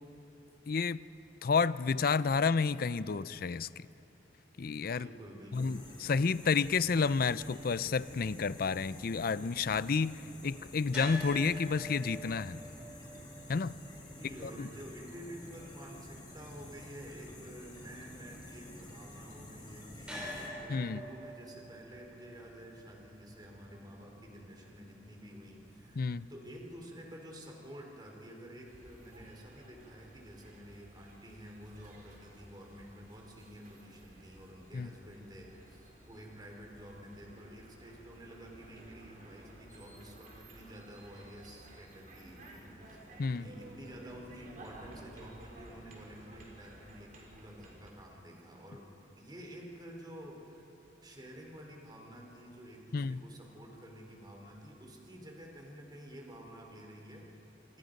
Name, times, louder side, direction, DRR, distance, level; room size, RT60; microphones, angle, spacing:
voice 1, 0.7-1.0 1.4-3.9 4.6-5.1 5.5-12.6 13.5-13.7 14.6-14.7 20.7-21.0 26.0-26.3 34.7-34.9 43.2-43.5 52.9-53.2, left 5 dB, 55° left, 16 dB, 0.5 m, -30 dB
voice 2, 4.9-5.8 14.1-43.0 43.4-50.7 51.0-57.8, equal, 25° right, 0 dB, 3.9 m, -50 dB
sound 1, 5.5-20.5, left 1 dB, 25° left, 4.9 m, -50 dB
sound 2, 10.9-27.0, equal, 5° right, 6.4 m, -49 dB
sound 3, 28.6-47.9, right 1 dB, 45° right, 4.0 m, -55 dB
27.5 x 25.5 x 5.3 m, 2.9 s
head